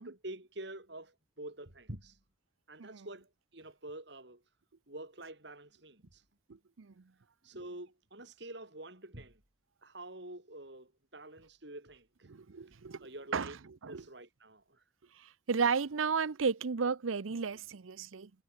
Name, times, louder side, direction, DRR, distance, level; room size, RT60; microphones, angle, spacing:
voice 1, 0.0-2.2 2.7-4.4 4.9-6.2 7.4-9.4 9.8-12.3 12.7-12.8 13.0-13.6 13.9-14.8, right 1 dB, 60° right, 4.3 m, -47 dB
voice 2, 12.3-13.1 13.3-13.5 13.8-14.0 15.2-18.3, right 5 dB, 90° right, 0.7 m, -33 dB
head